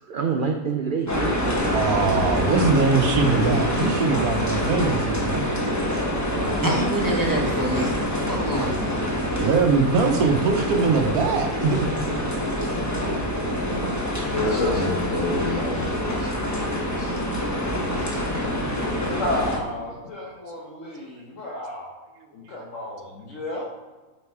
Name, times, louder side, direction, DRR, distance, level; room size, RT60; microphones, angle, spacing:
voice 1, 0.1-3.1 4.1-4.3 6.7-6.8 10.7-11.4, right 5 dB, 60° right, 3 dB, 0.5 m, -30 dB
sound 1, 1.1-19.6, equal, 15° left, 1.1 m, -26 dB
voice 2, 1.7-5.4 9.4-11.9 17.7-17.8, right 4 dB, 75° right, 5 dB, 1.3 m, -22 dB
voice 3, 6.6-9.0, right 1 dB, 15° right, -2 dB, 1.1 m, -26 dB
voice 4, 14.2-15.9 16.2-16.3 17.0-17.1 18.0-18.2 19.2-21.9 22.3-23.7, left 2 dB, 60° left, -4 dB, 1.5 m, -30 dB
8.6 x 4.2 x 4.7 m, 1.2 s
omnidirectional pair, 1.6 m